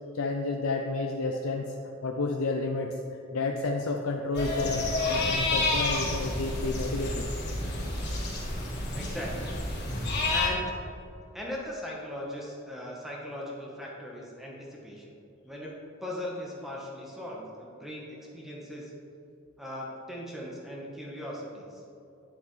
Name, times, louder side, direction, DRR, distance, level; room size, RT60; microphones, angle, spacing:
voice 1, 0.1-1.8 2.0-3.0 3.3-7.3, left 3 dB, 80° left, 2 dB, 0.5 m, -30 dB
sound 1, 4.3-10.5, left 2 dB, 50° left, 1.6 m, -30 dB
voice 2, 8.9-9.6 10.3-10.6 11.3-15.1 15.4-15.7 16.0-18.9 19.6-21.8, equal, ahead, -4 dB, 1.0 m, -39 dB
9.3 x 7.1 x 3.1 m, 2.7 s
head